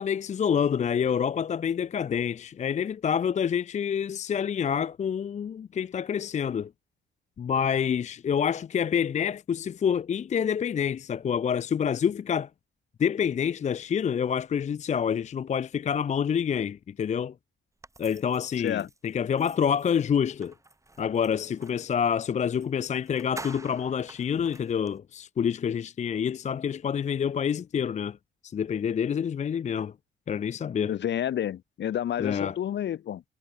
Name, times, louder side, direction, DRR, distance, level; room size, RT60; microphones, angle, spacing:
voice 1, 0.0-6.7 7.4-12.5 13.0-17.3 18.0-20.5 21.0-28.2 28.4-29.9 30.3-31.0 32.2-32.6, left 7 dB, 35° left, 0.5 m, -27 dB
sound 1, 17.8-21.9 22.5-22.7 23.0-25.0, right 2 dB, 15° right, 3.9 m, -48 dB
voice 2, 18.6-18.9 30.9-33.2, left 10 dB, 65° left, 1.7 m, -30 dB
cardioid pair, 90°, 20 cm